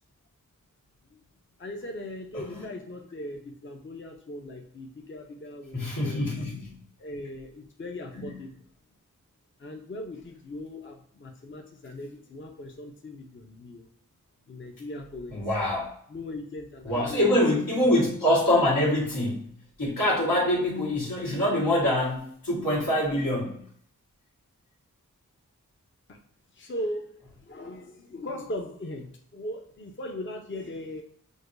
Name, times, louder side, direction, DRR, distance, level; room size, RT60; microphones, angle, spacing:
voice 1, 1.6-6.2 7.0-8.5 9.6-13.9 14.5-15.4 16.1-18.0 20.8-21.1 26.1-26.2 26.5-31.0, left 1 dB, 40° left, 2 dB, 0.6 m, -39 dB
voice 2, 5.7-6.7 8.1-8.3 15.3-15.9 16.8-19.5 19.8-23.6, left 1 dB, 90° left, -5 dB, 1.6 m, -25 dB
6.2 x 2.2 x 2.5 m, 0.64 s
wide cardioid pair, 55°, 32 cm